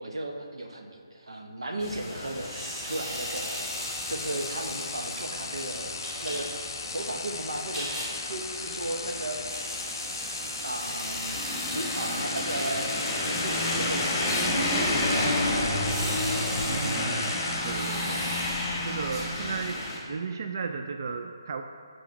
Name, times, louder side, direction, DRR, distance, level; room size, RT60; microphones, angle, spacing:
voice 1, 0.0-5.9 6.2-6.5 6.8-9.4 10.6-11.4 11.7-12.9 13.2-15.6, right 1 dB, 90° right, 3 dB, 0.9 m, -35 dB
sound 1, 1.8-20.0, left 1 dB, 15° left, 1.1 m, -32 dB
sound 2, 2.3-19.8, equal, 10° right, 1.3 m, -39 dB
sound 3, 3.1-18.2, left 4 dB, 60° left, 0.5 m, -38 dB
voice 2, 16.6-18.3 18.8-21.6, right 5 dB, 50° right, 5 dB, 0.3 m, -35 dB
6.2 x 4.9 x 4.6 m, 2.1 s
hypercardioid pair, 160°, 2 cm